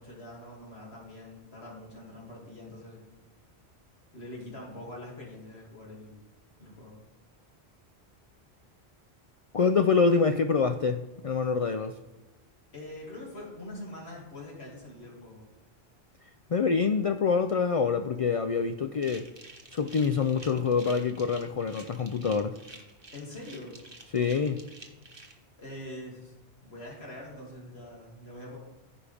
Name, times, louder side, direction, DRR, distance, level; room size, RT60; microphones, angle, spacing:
voice 1, 0.0-3.0 4.1-6.2 6.6-7.0 12.7-15.4 23.1-23.8 25.6-26.3 26.6-28.6, left 1 dB, 75° left, -4 dB, 2.9 m, -44 dB
voice 2, 9.5-11.9 16.5-19.3 19.7-22.6 24.1-24.7, left 5 dB, 55° left, 8 dB, 0.3 m, -26 dB
sound 1, 19.0-25.3, right 2 dB, 25° right, 1.2 m, -49 dB
14.5 x 5.2 x 3.5 m, 1.2 s
omnidirectional pair, 1.1 m